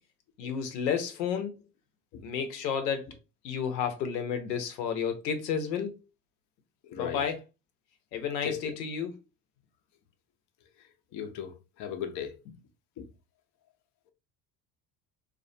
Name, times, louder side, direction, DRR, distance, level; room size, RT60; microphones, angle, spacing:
voice 1, 0.4-1.5 2.2-3.1 3.4-5.9 6.9-7.4 8.1-9.2, left 7 dB, 80° left, 0.7 m, -31 dB
voice 2, 6.9-7.2 8.4-8.6 11.1-12.3 13.0-13.1, left 8 dB, 40° left, 0.5 m, -36 dB
2.3 x 2.1 x 2.6 m
hypercardioid pair, 70°, 49 cm